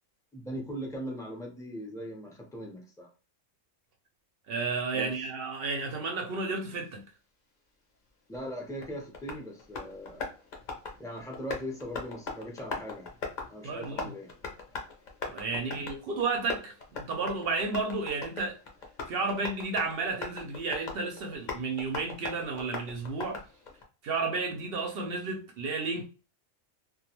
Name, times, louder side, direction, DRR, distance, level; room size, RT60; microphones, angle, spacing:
voice 1, 0.3-3.1 4.9-5.1 8.3-10.3 11.0-13.1 13.5-14.3 15.7-15.9, equal, 5° left, 0.4 m, -40 dB
voice 2, 4.5-7.0 13.6-14.1 15.2-18.6 19.1-23.4 24.0-26.1, right 3 dB, 65° right, 0.6 m, -32 dB
Tap, 8.3-23.8, left 4 dB, 50° left, 0.6 m, -41 dB
2.3 x 2.3 x 2.8 m
omnidirectional pair, 1.4 m